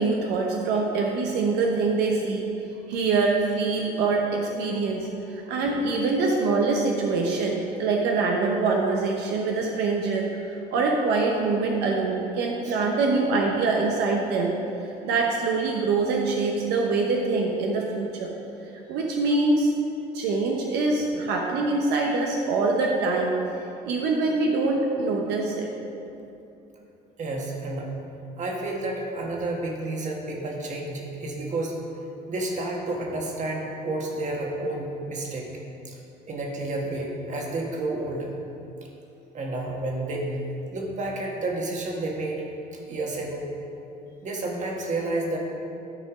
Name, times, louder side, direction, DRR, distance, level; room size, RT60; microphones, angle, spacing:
voice 1, 0.0-2.5 2.9-14.6 15.0-18.3 18.9-19.7 20.1-23.4 23.8-25.7, right 3 dB, 85° right, 0 dB, 0.8 m, -24 dB
voice 2, 27.2-28.0 28.4-31.7 32.3-35.6 35.8-36.0 36.3-38.4 39.3-40.4 40.7-42.4 42.7-43.5 44.2-45.4, right 2 dB, 45° right, -1 dB, 1.6 m, -30 dB
12.0 x 4.6 x 4.9 m, 2.7 s
cardioid pair, 110°, 17 cm